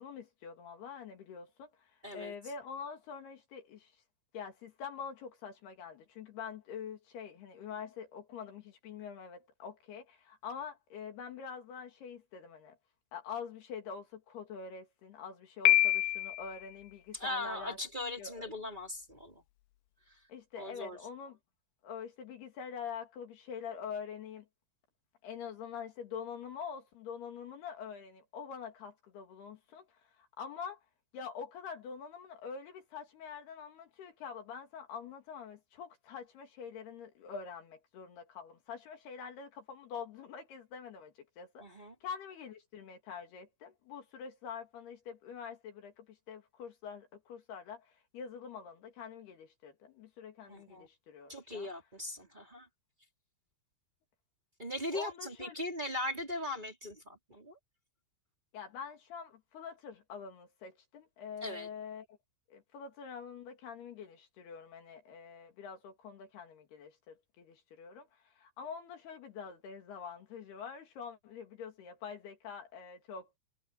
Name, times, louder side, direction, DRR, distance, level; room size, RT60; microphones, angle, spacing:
voice 1, 0.0-3.9 4.3-12.8 13.1-17.8 18.2-18.5 20.3-21.4 21.8-24.5 25.2-30.8 31.1-51.7 54.9-55.6 58.5-62.2 62.5-73.4, left 6 dB, 65° left, 4.0 m, -45 dB
voice 2, 2.0-2.3 17.1-19.4 20.1-20.2 20.6-21.0 41.6-41.9 50.5-50.9 51.3-52.7 54.6-57.6 61.4-61.7, left 1 dB, 10° right, 4.5 m, -39 dB
Piano, 15.7-16.6, left 16 dB, 80° left, 2.4 m, -26 dB
omnidirectional pair, 5.1 m